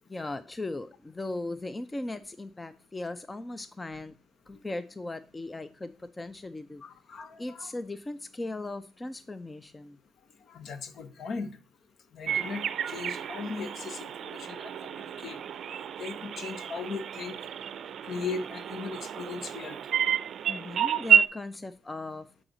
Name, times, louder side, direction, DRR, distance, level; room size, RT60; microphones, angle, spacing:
voice 1, 0.1-4.1 4.5-6.8 7.4-10.0 20.5-22.4, left 2 dB, 20° left, 0.5 m, -38 dB
voice 2, 6.8-7.7 10.5-11.5 12.1-15.4 16.0-17.4 18.0-19.8, left 4 dB, 60° left, 0.9 m, -38 dB
sound 1, 12.3-21.3, right 8 dB, 65° right, 0.5 m, -30 dB
7.8 x 4.9 x 3.8 m
cardioid pair, 90°, 0 cm